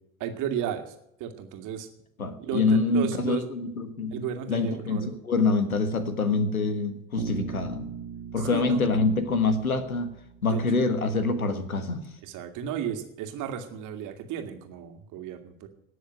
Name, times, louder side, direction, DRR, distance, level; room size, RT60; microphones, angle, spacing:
voice 1, 0.2-0.9 1.2-1.9 2.4-3.5 4.1-5.1 8.4-8.8 10.5-10.6 12.2-15.7, right 9 dB, 45° right, 6 dB, 2.1 m, -34 dB
voice 2, 2.2-7.9 8.3-10.1 10.4-12.1, left 3 dB, 80° left, 12 dB, 1.4 m, -26 dB
Bass guitar, 7.2-11.1, right 7 dB, 30° right, 1.7 m, -40 dB
18.5 x 6.5 x 9.0 m, 0.78 s
figure-of-eight pair, 70°, 42 cm